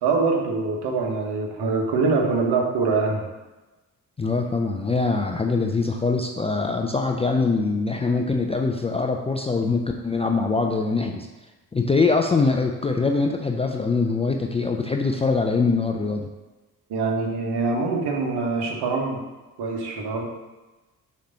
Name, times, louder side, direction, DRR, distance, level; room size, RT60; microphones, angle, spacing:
voice 1, 0.0-3.3 16.9-19.2 19.6-20.2, right 4 dB, 55° right, 1 dB, 1.4 m, -24 dB
voice 2, 4.2-11.3 11.7-16.3, left 4 dB, 15° left, 2 dB, 0.5 m, -23 dB
6.6 x 3.2 x 5.3 m, 1.1 s
figure-of-eight pair, 45°, 47 cm